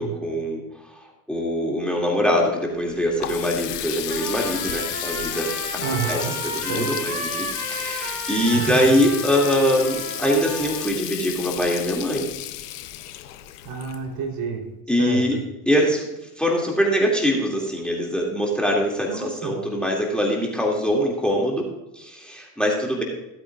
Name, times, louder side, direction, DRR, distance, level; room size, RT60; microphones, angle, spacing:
voice 1, 0.0-5.5 5.9-12.3 14.9-15.4 15.7-16.1 16.4-21.7 21.9-23.0, equal, ahead, -1 dB, 2.4 m, -23 dB
Water tap faucet, 2.8-14.4, left 13 dB, 85° left, 0.9 m, -33 dB
Trumpet, 4.1-10.8, right 2 dB, 25° right, 3.3 m, -33 dB
voice 2, 5.8-6.3 6.7-6.9 8.5-8.9 13.6-14.6 15.0-15.2 19.1-19.6, right 5 dB, 50° right, 0 dB, 3.7 m, -29 dB
16.0 x 8.8 x 2.5 m, 0.98 s
hypercardioid pair, 85°, 45 cm